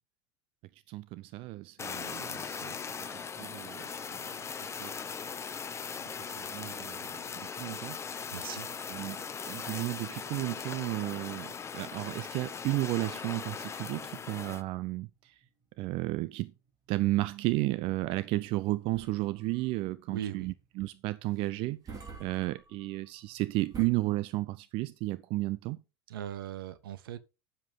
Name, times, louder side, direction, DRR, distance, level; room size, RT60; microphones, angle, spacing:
voice 1, 0.9-2.9 3.2-4.9 6.0-8.0 8.9-15.4 15.8-16.5 16.9-21.9 22.2-25.8, right 19 dB, 45° right, 0.6 m, -33 dB
Fire, 1.8-14.6, left 6 dB, 20° left, 1.0 m, -39 dB
voice 2, 8.3-8.7 20.1-20.5 26.1-27.2, right 11 dB, 65° right, 1.2 m, -39 dB
sound 1, 12.5-23.9, right 5 dB, 30° right, 3.5 m, -52 dB
10.0 x 7.5 x 5.4 m
figure-of-eight pair, 80°, 13 cm